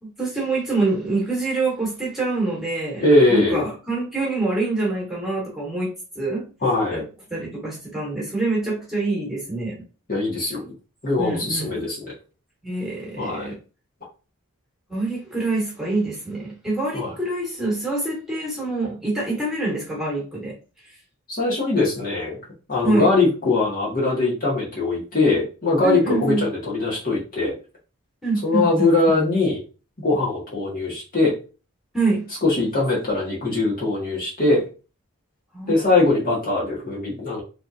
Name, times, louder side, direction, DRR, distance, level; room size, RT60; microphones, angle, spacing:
voice 1, 0.0-3.0 3.3-6.5 6.9-7.0 7.3-9.8 11.2-11.9 12.6-13.5 14.9-20.6 22.8-23.1 25.8-26.5 28.2-28.9 31.9-32.3 35.5-35.7, right 2 dB, ahead, 1.9 m, -25 dB
voice 2, 3.0-3.6 6.6-7.0 10.1-10.7 11.0-12.1 13.2-13.5 16.9-17.1 21.3-22.4 22.7-27.5 28.4-29.6 30.0-31.3 32.4-34.6 35.6-37.4, left 2 dB, 40° left, 1.9 m, -21 dB
4.2 x 3.4 x 2.8 m
head